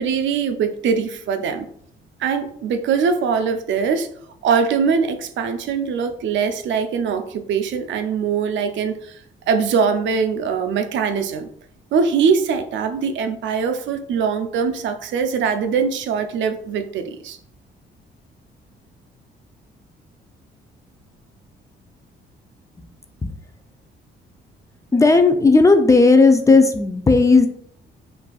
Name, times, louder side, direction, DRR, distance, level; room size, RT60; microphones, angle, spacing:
voice 1, 0.0-1.7 2.2-4.1 4.4-9.2 9.5-11.5 11.9-17.4, right 6 dB, 70° right, 8 dB, 0.5 m, -22 dB
voice 2, 24.9-27.5, left 3 dB, 15° left, 7 dB, 0.4 m, -14 dB
5.5 x 2.5 x 2.3 m, 0.65 s
cardioid pair, 90°, 20 cm